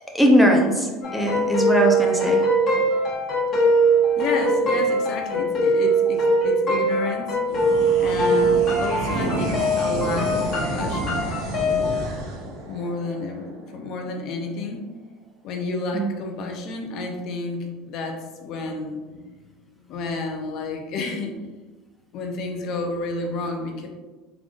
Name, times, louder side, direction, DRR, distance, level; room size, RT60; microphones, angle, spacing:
voice 1, 0.1-2.4 15.9-16.1, equal, ahead, 0 dB, 0.6 m, -20 dB
sound 1, 1.0-12.0, right 1 dB, 40° left, 1.2 m, -21 dB
voice 2, 4.2-7.4 8.0-11.3 12.7-14.8 15.4-19.4 19.9-21.3 22.1-23.9, left 3 dB, 60° left, 3 dB, 0.6 m, -30 dB
sound 2, 7.4-14.2, right 1 dB, 80° right, 0.8 m, -30 dB
3.8 x 3.4 x 2.4 m, 1.2 s
supercardioid pair, 105°, 0 cm